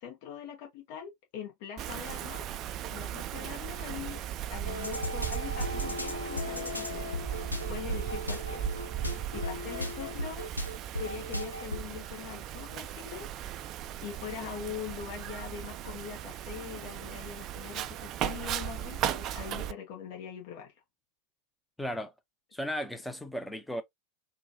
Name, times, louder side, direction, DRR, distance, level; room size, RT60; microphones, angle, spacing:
voice 1, 0.0-2.4 2.9-4.2 4.5-7.1 7.7-9.0 9.3-10.6 10.9-13.3 14.0-20.7, left 8 dB, 45° left, 1.1 m, -42 dB
Wind, 1.8-19.7, right 11 dB, 35° right, 0.4 m, -37 dB
sound 1, 4.6-11.8, left 1 dB, 85° left, 0.6 m, -36 dB
voice 2, 21.8-22.1 22.5-23.8, equal, 5° left, 0.7 m, -35 dB
3.7 x 2.3 x 2.7 m
figure-of-eight pair, 90°, 0 cm